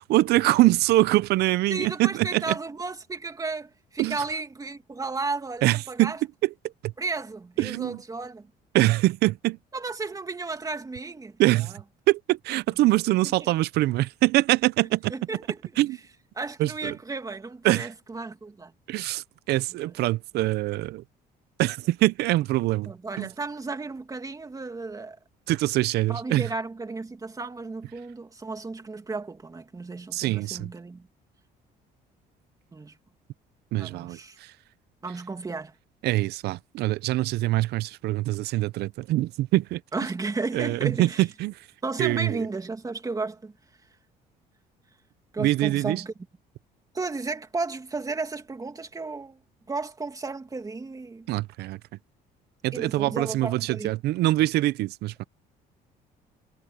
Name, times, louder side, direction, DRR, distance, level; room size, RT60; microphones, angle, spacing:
voice 1, 0.0-2.6 4.0-4.2 5.6-6.1 6.4-6.5 6.8-6.9 7.6-8.0 8.7-9.6 11.4-11.7 12.1-15.1 15.8-16.0 16.6-16.9 17.6-17.9 18.9-21.0 21.6-22.9 23.2-23.3 25.5-26.5 30.1-30.7 33.7-34.5 36.0-39.8 40.5-41.5 42.0-42.4 45.4-46.0 51.3-51.8 52.6-55.2, right 17 dB, 75° right, 0.6 m, -24 dB
voice 2, 1.7-6.2 7.0-8.5 9.7-11.4 13.1-13.3 15.1-15.6 16.4-18.7 19.8-20.0 22.9-25.2 26.1-31.1 32.7-33.0 33.7-34.4 35.0-35.7 39.9-41.2 41.8-43.5 45.3-46.1 46.9-49.4 49.7-51.3 52.7-53.9, right 3 dB, 20° right, 2.6 m, -34 dB
cardioid pair, 110°, 17 cm